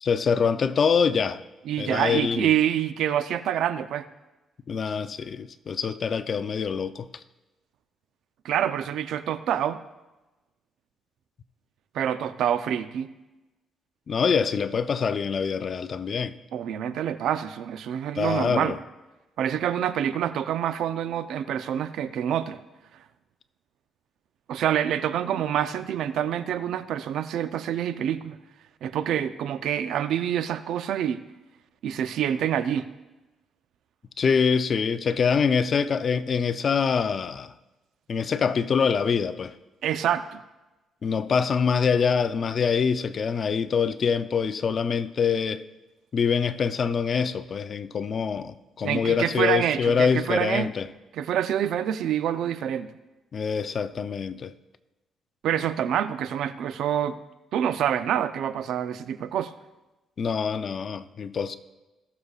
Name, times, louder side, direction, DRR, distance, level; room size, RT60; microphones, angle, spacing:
voice 1, 0.0-1.4 1.8-2.5 4.7-7.1 14.1-16.3 18.2-18.8 34.2-37.5 38.1-39.5 41.0-45.6 46.1-50.9 53.3-54.5 60.2-61.6, left 6 dB, 50° left, 0.5 m, -25 dB
voice 2, 1.7-4.1 8.4-9.8 11.9-13.1 16.5-18.8 19.4-22.6 24.5-28.4 28.8-31.2 31.8-32.9 39.8-40.4 48.8-50.7 51.1-52.9 55.4-57.2 57.5-59.5, right 10 dB, 80° right, 0.5 m, -26 dB
18.5 x 6.8 x 2.4 m
cardioid pair, 90°, 0 cm